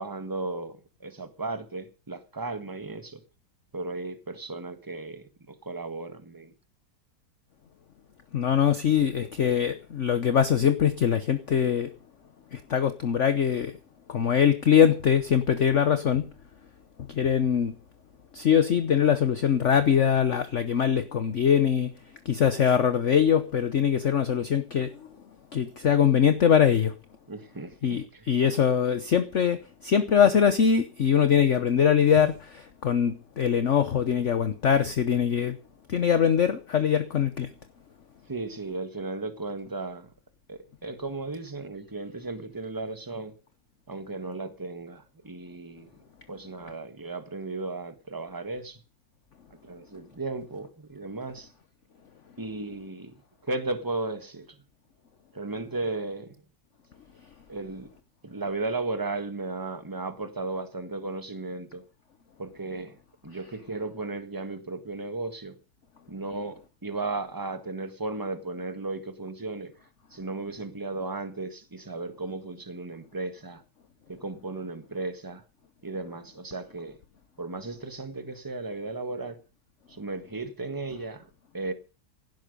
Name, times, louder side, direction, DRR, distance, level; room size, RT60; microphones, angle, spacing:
voice 1, 0.0-3.2 3.7-6.5 27.3-28.3 38.3-40.1 40.5-43.3 43.9-45.9 46.3-48.8 49.6-51.5 52.4-53.1 53.4-54.6 55.3-56.3 57.5-57.9 58.2-61.8 62.4-63.0 63.2-65.6 66.1-69.7 70.1-73.6 74.1-75.4 75.8-77.0 77.4-79.4 79.9-81.2 81.5-81.7, right 3 dB, 10° right, 1.4 m, -35 dB
voice 2, 8.3-11.9 12.5-13.7 14.1-16.3 17.1-17.7 18.3-21.9 22.2-25.2 25.5-26.9 27.8-35.6 35.9-37.5, left 8 dB, 50° left, 1.1 m, -23 dB
17.0 x 12.0 x 5.3 m
omnidirectional pair, 1.9 m